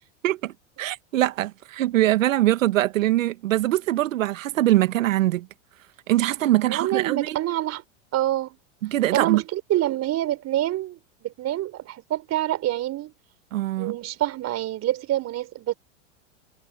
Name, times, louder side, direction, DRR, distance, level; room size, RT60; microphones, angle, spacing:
voice 1, 0.2-5.5 6.1-7.4 8.8-9.4 13.5-14.0, right 15 dB, 80° right, 1.6 m, -22 dB
voice 2, 6.7-7.8 8.1-8.6 9.1-13.1 13.8-15.7, right 14 dB, 40° right, 4.3 m, -26 dB
hypercardioid pair, 100°, 39 cm